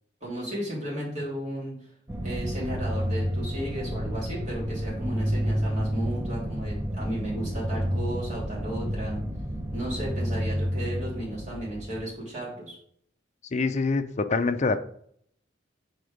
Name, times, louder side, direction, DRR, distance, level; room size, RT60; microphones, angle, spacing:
voice 1, 0.2-1.7 2.2-9.2 9.7-12.8, right 1 dB, 40° right, -5 dB, 3.1 m, -34 dB
sound 1, 2.1-12.1, equal, 15° right, 0.7 m, -30 dB
voice 2, 13.5-14.8, left 3 dB, 40° left, 10 dB, 0.5 m, -25 dB
6.4 x 4.3 x 5.0 m, 0.65 s
head